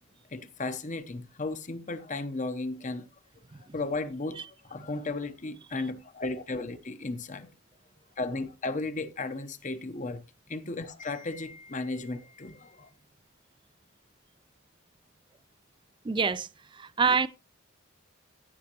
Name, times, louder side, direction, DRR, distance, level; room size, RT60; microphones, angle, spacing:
voice 1, 0.3-3.1 3.7-7.5 8.2-10.2 10.5-12.9, left 3 dB, 40° left, 0.9 m, -35 dB
voice 2, 16.0-17.3, right 5 dB, 25° right, 0.4 m, -27 dB
16.0 x 6.4 x 3.0 m
head